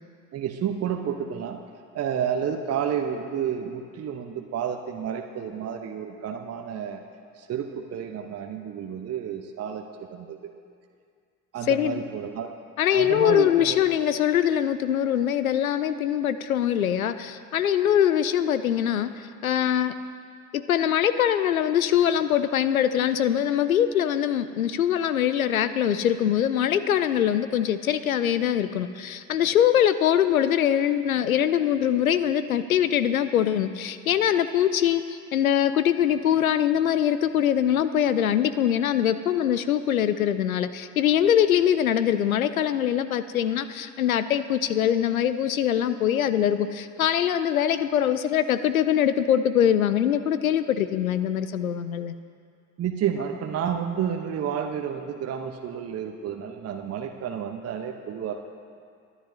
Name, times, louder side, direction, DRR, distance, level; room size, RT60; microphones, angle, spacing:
voice 1, 0.3-1.6 1.9-7.0 7.3-9.8 10.1-10.5 11.5-12.5 12.9-13.8 52.8-58.4, right 8 dB, 35° right, 4 dB, 0.9 m, -30 dB
voice 2, 11.7-12.0 12.8-19.9 20.5-52.1, left 10 dB, 85° left, 13 dB, 0.5 m, -23 dB
23.0 x 11.0 x 2.8 m, 2.3 s
figure-of-eight pair, 55°, 41 cm